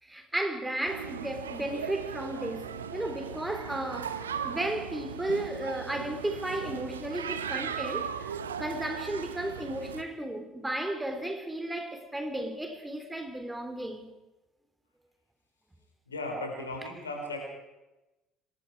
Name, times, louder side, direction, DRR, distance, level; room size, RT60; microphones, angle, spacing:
voice 1, 0.0-14.1, right 1 dB, 10° right, 3.6 m, -34 dB
sound 1, 0.9-10.0, right 7 dB, 80° right, 1.0 m, -38 dB
voice 2, 16.1-17.4, left 2 dB, 80° left, 5.2 m, -36 dB
26.0 x 22.0 x 4.8 m
figure-of-eight pair, 55°, 0 cm